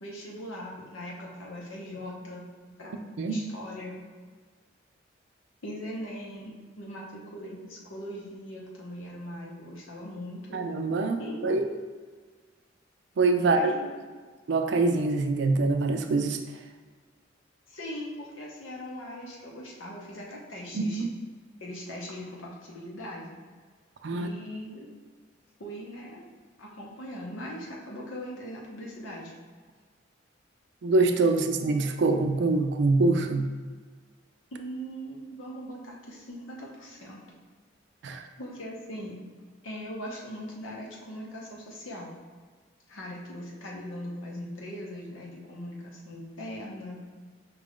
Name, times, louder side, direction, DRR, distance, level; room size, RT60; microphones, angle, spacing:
voice 1, 0.0-2.4 2.8-3.0 3.3-4.0 5.6-10.6 11.2-11.5 13.4-14.0 17.7-21.0 21.6-23.4 24.1-24.9 25.6-26.2 26.6-29.3 34.5-37.2 38.4-39.2 39.6-42.1 42.9-47.0, equal, 90° left, -3 dB, 1.0 m, -40 dB
voice 2, 10.5-11.7 13.2-13.7 14.5-16.4 20.7-21.1 24.0-24.3 30.8-33.5 38.0-38.2, right 3 dB, 60° right, 6 dB, 0.4 m, -24 dB
5.1 x 2.4 x 3.6 m, 1.5 s
head